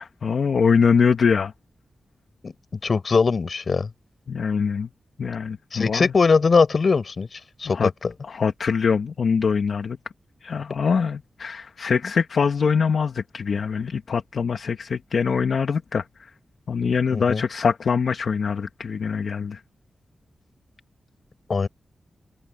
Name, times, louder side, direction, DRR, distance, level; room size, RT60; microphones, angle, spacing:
voice 1, 0.0-1.5 4.3-4.9 5.2-6.1 7.6-7.9 8.3-10.0 10.4-16.0 16.7-19.6, left 6 dB, 70° left, 1.6 m, -23 dB
voice 2, 2.8-3.9 5.7-8.1 17.1-17.4 21.5-21.7, left 4 dB, 55° left, 5.7 m, -21 dB
wide cardioid pair, 85°, 0 cm